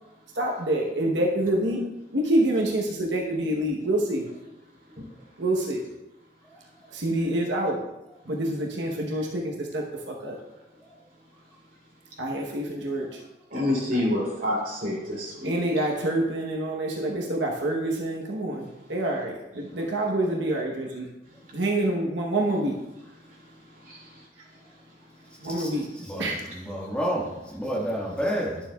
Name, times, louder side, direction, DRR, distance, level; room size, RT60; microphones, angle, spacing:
voice 1, 0.4-1.8 2.1-4.3 5.4-5.8 6.9-7.8 8.3-10.4 12.2-13.1 13.9-14.1 15.4-21.1 21.5-22.8 25.4-25.8 26.2-26.4, right 1 dB, 80° right, -1 dB, 1.0 m, -27 dB
voice 2, 13.5-15.6, left 1 dB, 50° right, -4 dB, 2.6 m, -27 dB
voice 3, 26.1-28.6, equal, 5° left, -5 dB, 1.5 m, -29 dB
11.0 x 7.4 x 2.3 m, 0.97 s
head